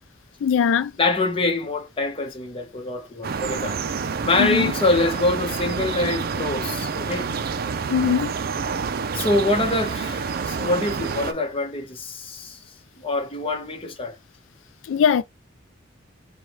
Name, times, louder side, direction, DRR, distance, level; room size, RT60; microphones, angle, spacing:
voice 1, 0.4-0.9 4.4-4.7 7.9-8.3 14.9-15.2, left 7 dB, 75° left, 0.3 m, -20 dB
voice 2, 1.0-3.8 4.2-7.3 9.1-12.6 13.0-14.2, left 2 dB, 30° left, 0.9 m, -25 dB
sound 1, 3.2-11.3, right 5 dB, 50° right, 0.4 m, -28 dB
4.7 x 2.3 x 3.1 m
head